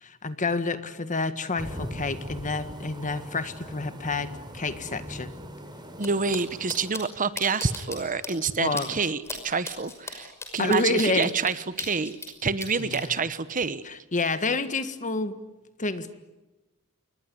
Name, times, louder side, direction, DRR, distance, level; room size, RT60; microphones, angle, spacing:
voice 1, 0.0-5.3 8.6-8.9 10.6-11.3 12.8-13.2 13.9-15.4 15.8-16.1, left 3 dB, 35° left, 11 dB, 1.7 m, -29 dB
sound 1, 1.6-6.9, equal, 20° right, 3.4 m, -40 dB
sound 2, 6.0-6.1 6.3-6.4 6.7-7.0 7.4-8.0 8.2-8.3 8.8-8.9 9.2-9.4 9.6-12.3 12.6-13.0, left 2 dB, 10° left, 5.8 m, -36 dB
voice 2, 6.0-12.1 12.4-13.8, right 4 dB, 35° right, 14 dB, 1.1 m, -27 dB
28.0 x 21.5 x 9.8 m, 1.1 s
head